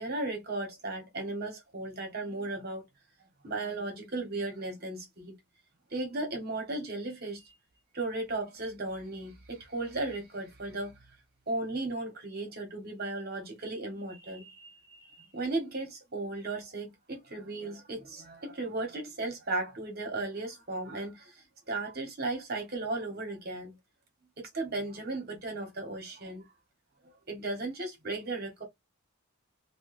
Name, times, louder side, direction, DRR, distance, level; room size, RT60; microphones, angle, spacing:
voice 1, 0.0-2.8 3.4-5.3 5.9-7.4 7.9-11.0 11.5-23.7 24.4-26.5 27.3-28.6, right 2 dB, 45° right, 1.2 m, -36 dB
3.1 x 2.3 x 3.1 m
head